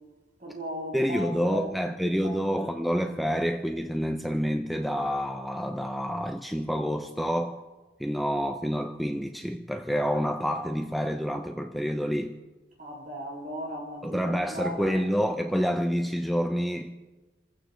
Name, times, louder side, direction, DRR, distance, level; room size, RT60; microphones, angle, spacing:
voice 1, 0.4-1.7 2.2-2.9 12.8-14.9, equal, 40° right, 7.4 m, -37 dB
voice 2, 0.9-7.6 8.0-12.4 14.0-16.9, equal, ahead, 0.5 m, -28 dB
29.0 x 15.5 x 3.2 m
head